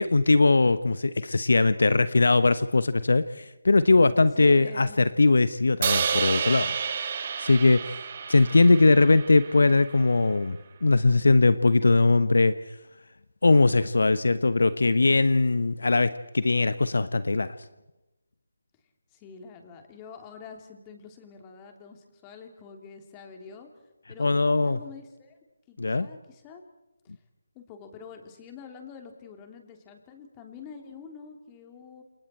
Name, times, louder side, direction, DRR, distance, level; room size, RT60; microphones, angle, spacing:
voice 1, 0.0-6.7 7.4-7.9 8.3-12.5 13.4-17.6 24.2-24.8 25.8-26.1, left 3 dB, 70° left, 14 dB, 1.0 m, -21 dB
voice 2, 4.4-5.0 19.1-23.7 24.1-24.3 24.6-25.4 25.7-26.6 27.5-32.0, left 6 dB, 20° left, 4 dB, 3.2 m, -46 dB
Crash cymbal, 5.8-10.0, right 6 dB, 40° right, 2.5 m, -30 dB
29.5 x 28.5 x 4.5 m, 0.97 s
figure-of-eight pair, 155°, 0 cm